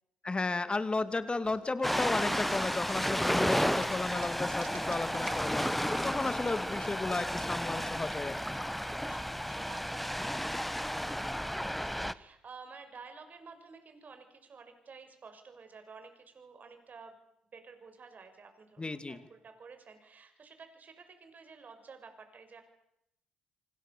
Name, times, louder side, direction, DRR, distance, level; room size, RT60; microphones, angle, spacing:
voice 1, 0.2-5.6 5.9-8.6 18.8-19.2, left 3 dB, 25° left, 12 dB, 2.7 m, -34 dB
sound 1, 1.4-3.3 3.7-6.9, right 12 dB, 80° right, 3.4 m, -51 dB
Ocean, 1.8-12.1, equal, ahead, 1.2 m, -32 dB
voice 2, 8.8-17.2 17.4-22.6, right 5 dB, 45° right, 8 dB, 6.4 m, -53 dB
27.0 x 26.0 x 7.0 m, 0.80 s
hypercardioid pair, 50°, 4 cm